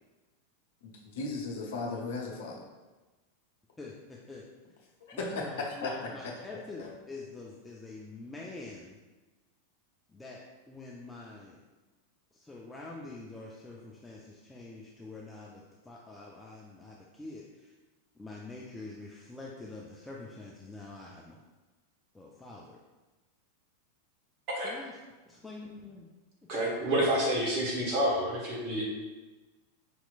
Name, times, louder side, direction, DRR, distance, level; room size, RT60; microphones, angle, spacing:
voice 1, 1.0-2.6 5.1-5.9 6.8-6.9, left 3 dB, 55° left, -1 dB, 0.7 m, -35 dB
voice 2, 3.8-4.4 5.1-9.0 10.1-10.4 10.7-11.6 12.3-17.7 18.1-21.4 22.1-22.8 24.6-25.0 25.3-26.1, left 3 dB, 10° left, -4 dB, 0.4 m, -46 dB
voice 3, 26.5-28.8, equal, 40° right, -3 dB, 1.2 m, -28 dB
5.2 x 2.9 x 2.3 m, 1.2 s
figure-of-eight pair, 90°, 0 cm